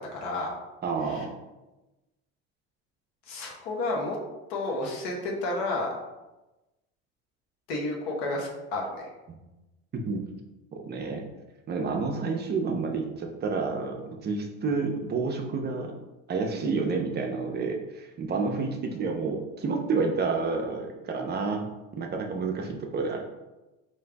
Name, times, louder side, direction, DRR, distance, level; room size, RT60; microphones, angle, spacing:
voice 1, 0.1-0.5 1.1-1.2 3.3-4.2 4.5-5.9 7.7-9.1, left 2 dB, 85° left, -1 dB, 1.1 m, -31 dB
voice 2, 0.8-1.4 9.9-10.2 10.7-11.3 11.7-15.9 16.3-21.7 22.0-23.2, right 4 dB, 35° right, 2 dB, 0.6 m, -29 dB
3.6 x 2.6 x 3.4 m, 1.1 s
cardioid pair, 110°, 31 cm